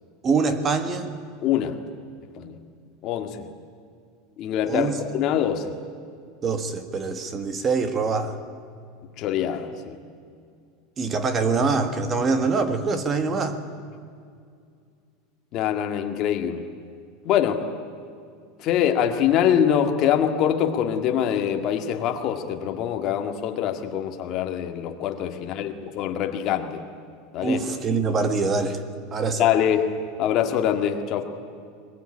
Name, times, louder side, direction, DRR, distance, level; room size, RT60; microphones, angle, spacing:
voice 1, 0.2-1.1 4.7-5.2 6.4-8.4 11.0-13.6 27.4-28.8 29.1-29.5, right 4 dB, 20° right, 9 dB, 1.6 m, -24 dB
voice 2, 1.4-1.8 2.4-2.6 3.0-3.5 4.4-5.7 9.2-10.0 15.5-16.6 17.2-17.6 18.6-26.8 27.3-27.6 29.4-29.9 30.2-31.2, left 9 dB, 35° left, 5 dB, 2.0 m, -24 dB
21.5 x 21.5 x 9.9 m, 2.3 s
supercardioid pair, 170°, 0 cm